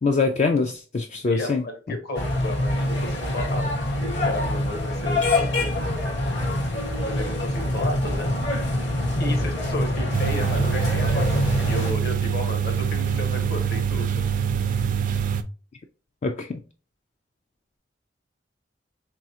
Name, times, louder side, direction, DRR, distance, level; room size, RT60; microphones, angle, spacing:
voice 1, 0.0-1.6 16.2-16.6, left 4 dB, 40° left, 0.4 m, -23 dB
voice 2, 1.3-3.7 4.2-6.0 7.0-8.3 9.2-14.2, left 1 dB, 60° left, 1.3 m, -33 dB
sound 1, 2.1-11.9, left 1 dB, 80° left, 2.0 m, -25 dB
sound 2, 10.1-15.4, right 7 dB, 50° right, 0.4 m, -24 dB
4.0 x 3.7 x 2.7 m
head